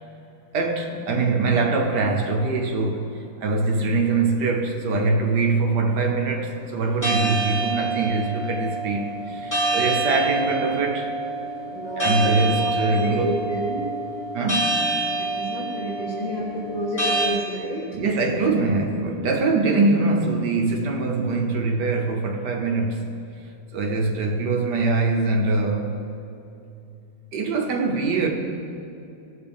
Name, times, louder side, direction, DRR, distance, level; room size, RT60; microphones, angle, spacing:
voice 1, 0.5-11.1 12.0-13.3 14.3-14.8 17.9-23.1 23.7-26.0 27.3-28.3, right 3 dB, 65° right, 1.5 m, -23 dB
sound 1, 7.0-17.3, right 2 dB, 10° left, 1.4 m, -27 dB
voice 2, 11.7-13.9 15.2-18.0, equal, 85° left, 2.3 m, -29 dB
17.0 x 6.9 x 3.5 m
omnidirectional pair, 2.0 m